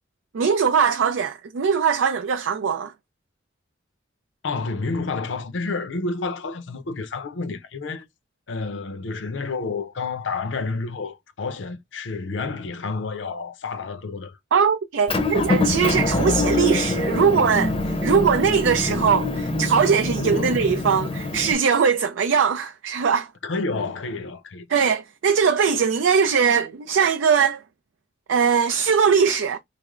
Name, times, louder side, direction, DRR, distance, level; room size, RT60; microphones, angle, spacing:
voice 1, 0.3-2.9 14.5-23.3 24.7-27.6 28.3-29.6, right 6 dB, 75° right, 0.4 m, -21 dB
voice 2, 4.4-8.1 8.5-14.4 20.2-20.7 23.4-24.7, left 3 dB, 70° left, 0.6 m, -29 dB
Motor vehicle (road) / Engine, 15.1-21.5, left 2 dB, 30° left, 0.6 m, -24 dB
3.3 x 2.0 x 3.6 m
head